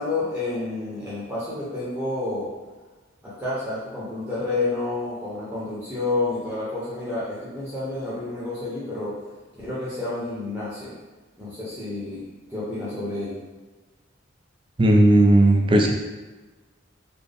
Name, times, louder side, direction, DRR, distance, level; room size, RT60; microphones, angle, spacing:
voice 1, 0.0-2.5 3.2-9.1 9.6-10.9 11.4-12.2 12.5-13.4, left 2 dB, 10° right, -10 dB, 0.9 m, -29 dB
voice 2, 14.8-15.9, right 1 dB, 25° right, 2 dB, 0.4 m, -15 dB
4.2 x 2.1 x 3.4 m, 1.2 s
head